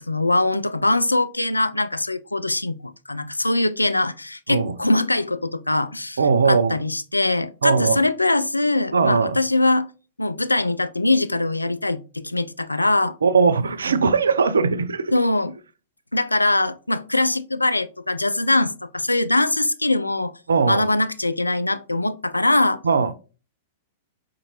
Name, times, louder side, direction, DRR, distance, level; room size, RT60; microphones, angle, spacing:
voice 1, 0.0-6.2 6.5-9.9 10.2-13.1 15.1-15.6 16.1-20.3 20.7-22.8, left 2 dB, 90° left, 0.3 m, -22 dB
voice 2, 6.2-6.8 7.6-8.0 8.9-9.4 13.2-15.1 20.5-20.8 22.8-23.1, right 5 dB, 75° right, 0.4 m, -19 dB
5.2 x 2.5 x 2.9 m
figure-of-eight pair, 100°, 0 cm